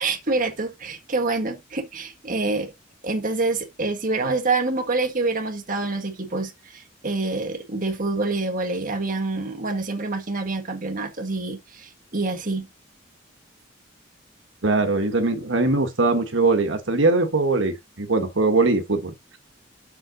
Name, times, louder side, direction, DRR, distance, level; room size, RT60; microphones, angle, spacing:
voice 1, 0.0-2.7 3.0-12.7, right 3 dB, 40° right, 1.6 m, -26 dB
voice 2, 14.6-19.4, right 3 dB, 75° right, 1.4 m, -21 dB
7.6 x 6.0 x 3.9 m
head